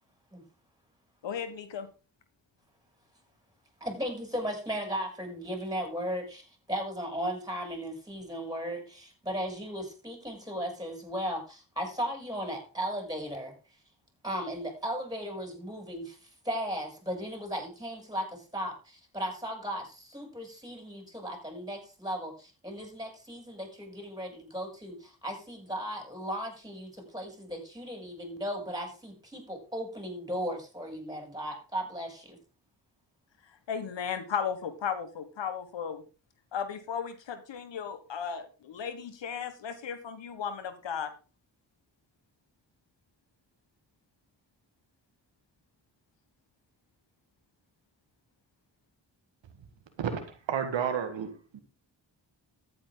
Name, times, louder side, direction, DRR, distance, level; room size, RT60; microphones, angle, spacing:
voice 1, 1.2-1.9 33.7-36.0 36.5-41.1, left 7 dB, 75° left, 1.5 m, -35 dB
voice 2, 3.8-13.5 14.2-16.2 16.4-32.4, equal, 10° right, 7.1 m, -36 dB
voice 3, 50.0-51.6, right 7 dB, 85° right, 1.8 m, -32 dB
14.0 x 8.8 x 3.9 m
supercardioid pair, 45°, 44 cm